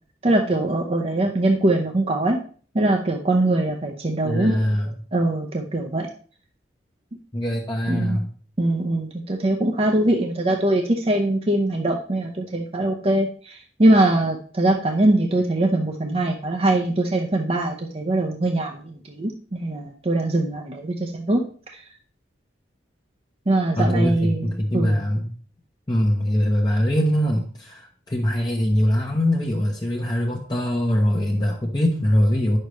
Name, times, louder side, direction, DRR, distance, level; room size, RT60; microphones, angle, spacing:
voice 1, 0.2-2.4 2.7-4.7 5.1-6.1 7.9-8.2 8.6-21.4 21.7-21.8 23.5-25.0, right 1 dB, 35° right, 2 dB, 0.7 m, -22 dB
voice 2, 4.2-4.9 7.3-8.3 23.8-25.3 25.9-32.6, equal, 25° left, -1 dB, 0.9 m, -22 dB
9.5 x 6.5 x 3.1 m, 0.43 s
head